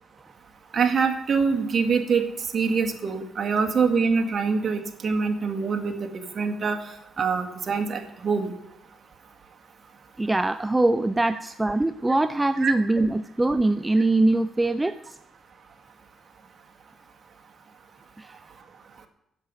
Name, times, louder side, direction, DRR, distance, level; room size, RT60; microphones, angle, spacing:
voice 1, 0.7-6.8 7.2-8.5 12.6-12.7, right 5 dB, 50° right, 5 dB, 2.0 m, -24 dB
voice 2, 10.2-15.2 18.2-18.3, right 2 dB, 15° right, 11 dB, 0.5 m, -23 dB
10.5 x 7.7 x 9.7 m, 0.83 s
supercardioid pair, 70°, 0 cm